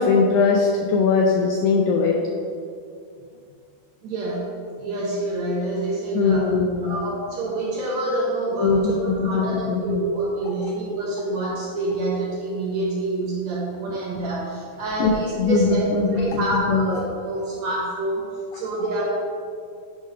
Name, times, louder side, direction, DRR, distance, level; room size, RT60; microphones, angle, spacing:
voice 1, 0.0-2.2 6.1-6.9 8.6-10.0 15.0-15.1 15.4-16.9, left 4 dB, 85° left, 1 dB, 1.7 m, -20 dB
voice 2, 4.0-4.5 4.8-6.5 6.8-19.0, right 2 dB, 70° right, -4 dB, 1.8 m, -27 dB
9.1 x 3.3 x 5.6 m, 2.3 s
omnidirectional pair, 4.0 m